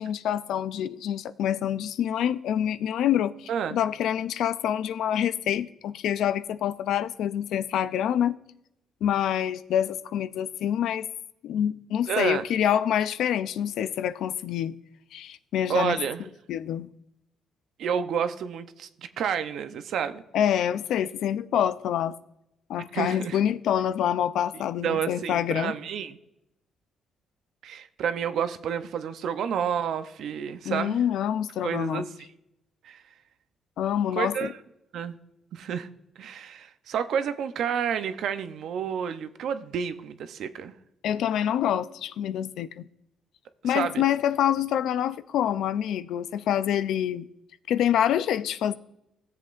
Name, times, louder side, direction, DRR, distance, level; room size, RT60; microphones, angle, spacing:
voice 1, 0.0-8.4 9.0-11.1 11.4-14.8 15.1-16.0 16.5-16.9 20.3-22.2 22.7-25.7 30.7-32.1 33.8-34.5 41.0-42.9 43.6-47.3 47.7-48.7, left 10 dB, 80° left, 0.4 m, -26 dB
voice 2, 12.1-12.5 15.7-16.2 17.8-20.2 22.9-23.4 24.8-26.2 27.6-31.0 31.6-32.1 32.8-33.0 34.1-34.6 34.9-35.2 35.5-35.9 36.2-40.7 43.6-44.0, right 7 dB, 75° right, 0.7 m, -30 dB
16.5 x 7.6 x 2.5 m
cardioid pair, 90°, 0 cm